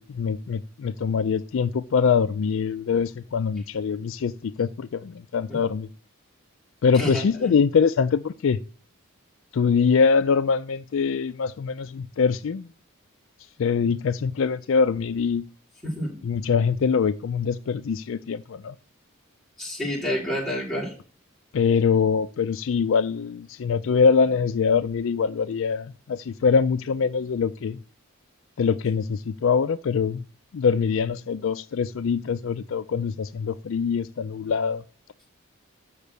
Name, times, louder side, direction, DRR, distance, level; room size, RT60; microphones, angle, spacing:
voice 1, 0.0-5.9 6.8-8.6 9.5-12.7 13.6-15.5 16.2-18.8 21.5-27.8 28.6-30.2 30.5-34.8, left 5 dB, 65° left, 0.4 m, -23 dB
voice 2, 6.9-7.5 15.8-16.1 19.6-20.9, equal, ahead, 5.4 m, -29 dB
7.2 x 6.7 x 6.8 m
head